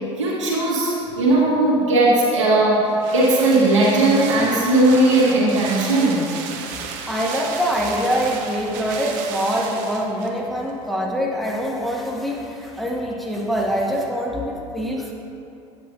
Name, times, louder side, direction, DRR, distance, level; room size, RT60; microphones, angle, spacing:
voice 1, 0.2-6.3, right 2 dB, 90° right, -8 dB, 1.5 m, -18 dB
sound 1, 2.3-10.4 10.7-10.8, right 6 dB, 60° right, 0.7 m, -33 dB
voice 2, 7.1-15.1, equal, ahead, -2 dB, 1.4 m, -24 dB
8.7 x 8.2 x 2.4 m, 2.6 s
hypercardioid pair, 70°, 15 cm